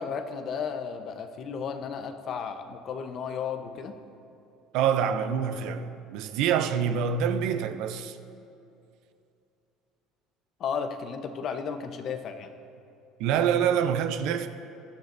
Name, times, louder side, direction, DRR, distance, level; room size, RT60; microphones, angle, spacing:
voice 1, 0.0-3.9 10.6-12.5, left 6 dB, 45° left, 0.9 m, -34 dB
voice 2, 4.7-8.2 13.2-14.5, right 8 dB, 70° right, 0.6 m, -26 dB
20.0 x 12.0 x 2.7 m
cardioid pair, 120°, 0 cm